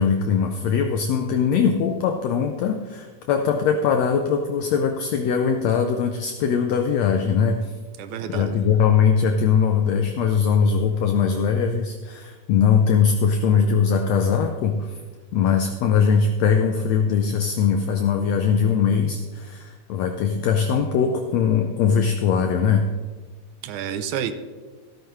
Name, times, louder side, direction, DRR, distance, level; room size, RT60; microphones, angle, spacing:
voice 1, 0.0-7.7 8.3-15.0 15.3-22.9, left 6 dB, 75° left, 5 dB, 1.7 m, -21 dB
voice 2, 8.0-8.6 23.6-24.3, right 9 dB, 80° right, 10 dB, 2.1 m, -29 dB
14.5 x 13.0 x 3.2 m, 1.4 s
omnidirectional pair, 3.5 m